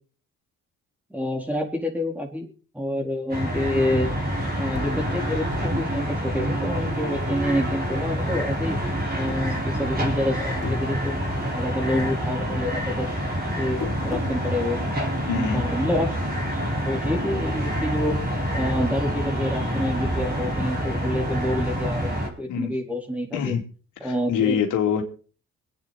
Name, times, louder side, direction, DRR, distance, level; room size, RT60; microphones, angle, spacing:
voice 1, 1.1-4.1 4.6-8.8 9.1-11.2 11.6-13.1 13.6-14.8 15.4-16.2 16.8-18.2 18.5-23.5 24.0-24.6, left 1 dB, 5° right, 2 dB, 4.0 m, -28 dB
sound 1, 3.3-22.3, equal, 30° right, 4.8 m, -27 dB
sound 2, 4.7-7.6 7.9-8.8 9.2-10.1 10.4-11.7 12.0-14.4, left 6 dB, 70° left, 4.2 m, -39 dB
voice 2, 15.3-15.6 22.5-22.7 23.3-23.6 24.0-25.0, left 8 dB, 85° left, 2 dB, 2.8 m, -24 dB
24.5 x 9.3 x 4.2 m, 0.39 s
cardioid pair, 90°, 30 cm